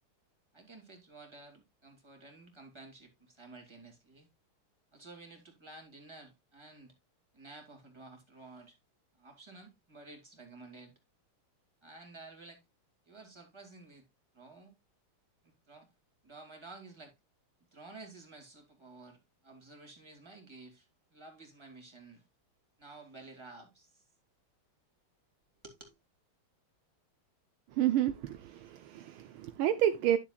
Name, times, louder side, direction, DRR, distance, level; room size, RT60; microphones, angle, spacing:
voice 1, 0.5-4.3 4.9-6.9 7.3-8.8 9.2-10.9 11.8-12.6 13.1-14.1 14.3-14.7 15.4-15.9 16.2-17.1 17.7-22.2 22.8-24.0 25.6-26.0, right 3 dB, 10° right, 2.5 m, -52 dB
voice 2, 27.7-30.2, right 11 dB, 75° right, 1.5 m, -30 dB
11.5 x 7.0 x 2.4 m
omnidirectional pair, 2.4 m